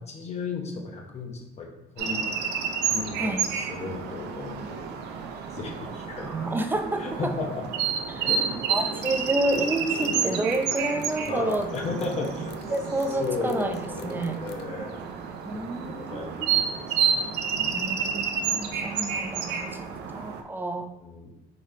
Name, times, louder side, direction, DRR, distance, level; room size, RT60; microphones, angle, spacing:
voice 1, 0.0-1.7 2.0-2.3 2.9-4.9 5.5-6.5 7.0-7.7 8.1-8.6 11.2-12.5 13.2-15.2 15.5-18.0 19.9-20.0 21.0-21.4, left 4 dB, 40° left, 1 dB, 0.9 m, -35 dB
sound 1, 2.0-20.4, right 7 dB, 80° right, 0.6 m, -30 dB
voice 2, 6.2-7.3 8.1-11.7 12.7-13.8 14.0-14.4 15.4-16.5 17.7-20.9, right 2 dB, 10° right, 6 dB, 0.4 m, -30 dB
sound 2, 8.7-14.7, left 11 dB, 80° left, 0.5 m, -42 dB
3.9 x 3.3 x 4.1 m, 0.92 s
cardioid pair, 110°, 17 cm